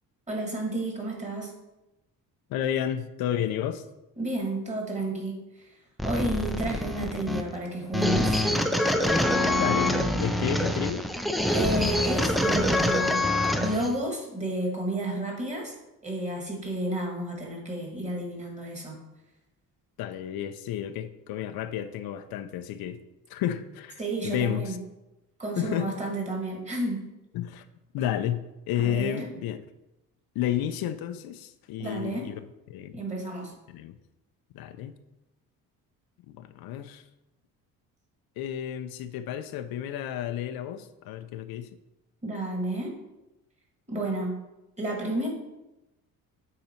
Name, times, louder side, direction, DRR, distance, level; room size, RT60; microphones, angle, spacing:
voice 1, 0.3-1.5 4.2-5.7 6.0-8.5 11.5-13.3 13.6-15.8 16.0-19.0 24.0-24.8 25.4-27.1 28.8-29.3 31.8-32.3 32.9-33.5 42.2-42.9 43.9-44.4 44.8-45.3, right 1 dB, 20° right, 0 dB, 1.8 m, -31 dB
voice 2, 2.5-3.9 9.5-11.1 20.0-23.0 23.3-24.8 25.6-25.9 27.3-27.7 27.9-29.6 30.3-33.0 33.7-34.0 34.5-34.9 36.3-37.1 38.4-41.7, left 10 dB, 85° left, 10 dB, 0.6 m, -31 dB
sound 1, 6.0-13.9, left 1 dB, ahead, 0.4 m, -25 dB
8.4 x 4.0 x 4.4 m, 0.95 s
cardioid pair, 130°, 36 cm